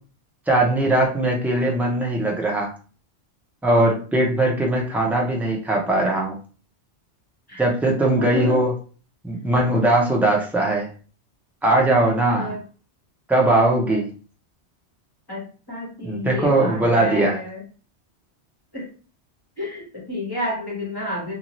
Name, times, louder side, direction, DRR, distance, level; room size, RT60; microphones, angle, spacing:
voice 1, 0.5-2.7 3.6-6.4 7.6-8.7 9.2-10.9 11.6-12.5 13.3-14.1 16.0-17.4, right 1 dB, ahead, -1 dB, 0.5 m, -20 dB
voice 2, 8.2-8.6 12.3-12.6 13.9-14.0 15.3-17.6 18.7-18.9 19.6-21.4, left 1 dB, 20° left, -4 dB, 1.1 m, -30 dB
2.7 x 2.4 x 3.0 m, 0.38 s
omnidirectional pair, 1.1 m